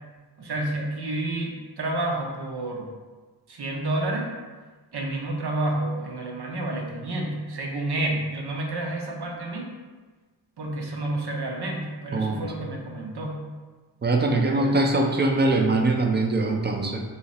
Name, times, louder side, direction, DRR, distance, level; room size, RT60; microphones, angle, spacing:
voice 1, 0.4-2.9 3.5-4.3 4.9-9.7 10.6-13.4 14.3-14.8, right 2 dB, 65° right, 0 dB, 0.7 m, -30 dB
voice 2, 12.1-12.5 14.0-17.0, right 2 dB, 25° right, 2 dB, 0.5 m, -22 dB
3.1 x 2.8 x 3.0 m, 1.3 s
cardioid pair, 50°, 43 cm